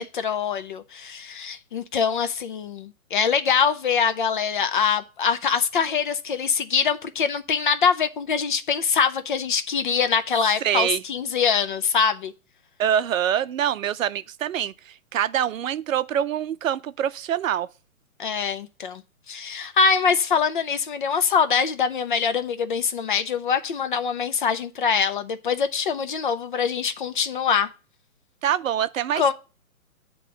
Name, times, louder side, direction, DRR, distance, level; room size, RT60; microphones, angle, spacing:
voice 1, 0.0-12.3 18.2-19.0 19.3-27.7 29.2-29.3, left 6 dB, 40° left, 0.5 m, -24 dB
voice 2, 10.6-11.0 12.8-17.7 28.4-29.3, right 10 dB, 70° right, 0.6 m, -25 dB
8.2 x 3.0 x 6.1 m
hypercardioid pair, 145°, 42 cm